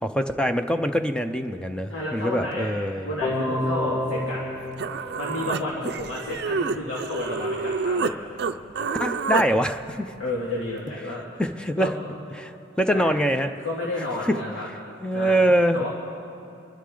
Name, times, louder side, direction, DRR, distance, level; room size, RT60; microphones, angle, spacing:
voice 1, 0.0-3.1 9.0-10.1 11.4-11.9 12.4-13.5 14.0-14.4 15.0-15.8, equal, 5° left, 8 dB, 0.5 m, -24 dB
voice 2, 1.9-2.7 3.0-4.4 5.1-8.1 10.2-11.3 11.8-11.9 12.9-13.2 13.6-14.7 15.1-15.4 15.7-15.9, left 2 dB, 90° left, -5 dB, 2.1 m, -31 dB
sound 1, 3.2-6.2, left 1 dB, 55° left, 3.6 m, -30 dB
Human voice, 4.4-4.5 4.8-8.1 8.4-9.5, right 5 dB, 55° right, 0.5 m, -28 dB
27.5 x 11.5 x 3.8 m, 2.7 s
head